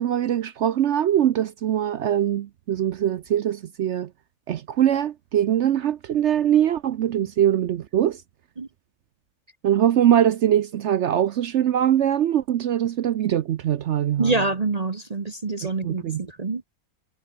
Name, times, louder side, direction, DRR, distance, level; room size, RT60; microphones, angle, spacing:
voice 1, 0.0-4.1 4.5-8.2 9.6-14.3 15.6-16.2, right 10 dB, 65° right, 0.7 m, -22 dB
voice 2, 14.2-16.6, right 3 dB, 30° right, 0.9 m, -26 dB
omnidirectional pair, 1.7 m